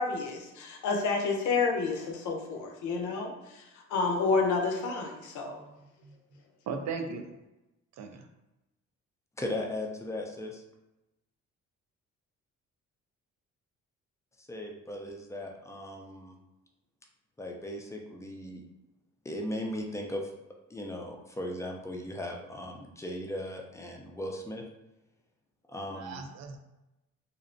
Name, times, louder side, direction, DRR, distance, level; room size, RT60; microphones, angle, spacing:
voice 1, 0.0-3.6 3.9-5.6, left 4 dB, 75° left, 2 dB, 0.6 m, -29 dB
voice 2, 6.7-7.2 8.0-8.2 25.9-26.6, right 5 dB, 65° right, 5 dB, 0.5 m, -37 dB
voice 3, 9.4-10.6 14.4-16.3 17.4-18.6 19.2-20.3 20.7-24.6 25.7-26.3, left 1 dB, 10° left, 1 dB, 0.4 m, -37 dB
2.5 x 2.0 x 2.5 m, 0.97 s
cardioid pair, 90°, 30 cm